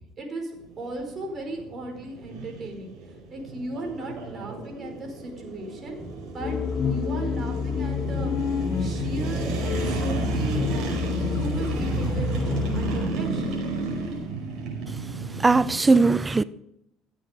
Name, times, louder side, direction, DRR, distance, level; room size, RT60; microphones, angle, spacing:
voice 1, 0.0-2.9 3.3-11.0 11.3-13.6, right 1 dB, 40° right, 4.8 m, -36 dB
sound 1, 0.5-15.8, right 3 dB, 70° right, 5.1 m, -32 dB
sound 2, 6.4-13.1, left 6 dB, 45° left, 0.9 m, -28 dB
voice 2, 15.4-16.4, right 3 dB, 20° right, 0.4 m, -19 dB
15.0 x 8.4 x 5.1 m
supercardioid pair, 90°, 0 cm